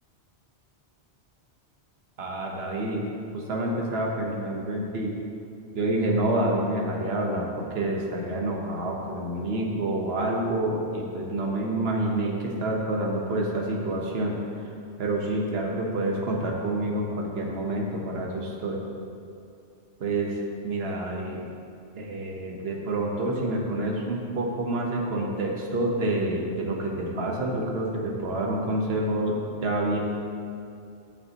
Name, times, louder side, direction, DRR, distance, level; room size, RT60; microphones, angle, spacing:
voice 1, 2.2-3.0 3.3-5.1 5.7-14.3 14.6-14.7 15.0-18.8 20.0-21.4 22.0-30.0, right 1 dB, 65° right, -1 dB, 1.3 m, -28 dB
13.0 x 6.8 x 3.0 m, 2.5 s
omnidirectional pair, 1.2 m